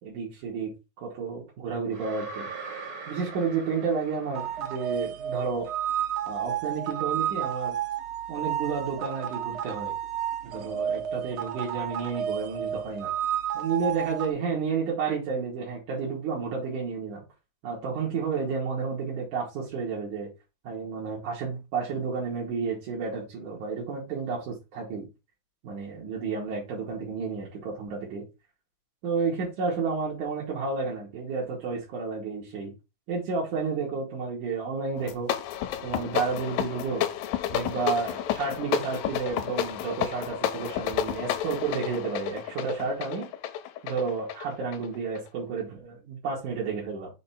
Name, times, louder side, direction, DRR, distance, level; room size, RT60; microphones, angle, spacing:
voice 1, 0.0-0.7 1.0-2.5 3.1-5.7 6.3-7.8 8.3-9.9 10.4-13.1 13.5-17.2 17.6-20.3 20.7-25.1 25.6-28.3 29.0-32.7 33.1-35.3 35.8-37.1 37.5-43.3 43.8-47.1, right 5 dB, 80° right, 3.4 m, -31 dB
sound 1, 1.9-5.0, right 4 dB, 45° right, 1.3 m, -41 dB
sound 2, 4.3-14.3, right 9 dB, 60° right, 1.4 m, -31 dB
sound 3, 35.0-45.3, left 11 dB, 75° left, 2.1 m, -31 dB
6.7 x 3.4 x 5.7 m
omnidirectional pair, 3.5 m